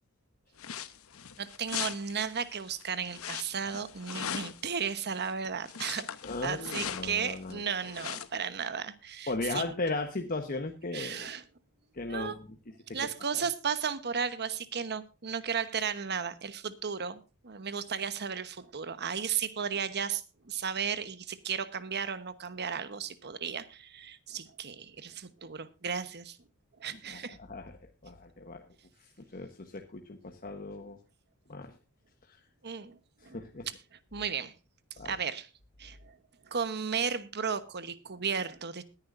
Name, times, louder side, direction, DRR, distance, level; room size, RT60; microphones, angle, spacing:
sound 1, 0.6-7.5 7.8-8.3, left 9 dB, 65° left, 0.9 m, -40 dB
voice 1, 1.4-6.1 6.4-9.6 10.9-11.4 12.1-12.4 12.9-26.4 26.8-27.4 32.6-33.4 34.1-34.5 35.0-35.5 35.8-36.2 36.4-38.8, right 6 dB, 50° right, 1.1 m, -34 dB
voice 2, 6.2-8.1 9.3-11.3 11.9-13.0 13.3-13.4 26.9-27.8 28.0-28.7 29.0-31.0 31.5-31.7 32.3-32.4 33.2-33.7 35.0-35.1, left 3 dB, 40° left, 1.2 m, -37 dB
21.0 x 10.0 x 2.6 m
head